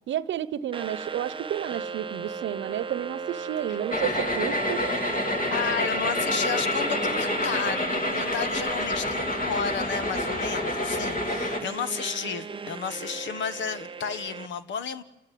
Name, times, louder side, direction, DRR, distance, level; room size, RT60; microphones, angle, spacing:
voice 1, 0.1-4.9, right 11 dB, 70° right, 1.0 m, -31 dB
sound 1, 0.7-14.5, right 5 dB, 25° right, 0.7 m, -37 dB
sound 2, 3.9-11.6, left 1 dB, 45° left, 2.8 m, -28 dB
voice 2, 5.5-15.0, left 6 dB, 70° left, 1.4 m, -32 dB
28.5 x 14.5 x 9.3 m
cardioid pair, 90°, 20 cm